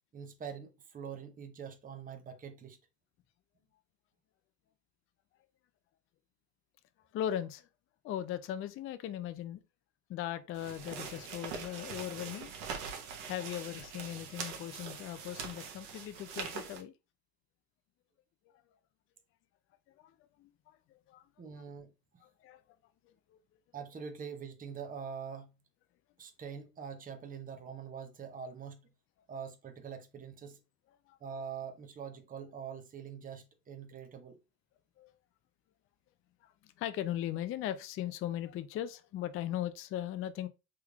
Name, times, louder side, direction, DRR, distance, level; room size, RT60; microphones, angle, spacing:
voice 1, 0.1-2.8 21.4-21.9 23.7-25.5 26.2-28.8 29.3-30.6 31.2-34.4, right 6 dB, 20° right, 0.7 m, -44 dB
voice 2, 7.1-7.7 8.0-9.6 10.1-12.5 13.2-16.9 20.0-20.1 20.4-20.8 21.1-21.2 22.2-22.6 31.1-31.2 35.0-35.1 36.4-36.5 36.8-40.5, left 11 dB, 30° left, 0.4 m, -38 dB
sound 1, 10.5-16.8, right 6 dB, 65° right, 1.1 m, -43 dB
3.6 x 3.2 x 2.3 m
hypercardioid pair, 75°, 46 cm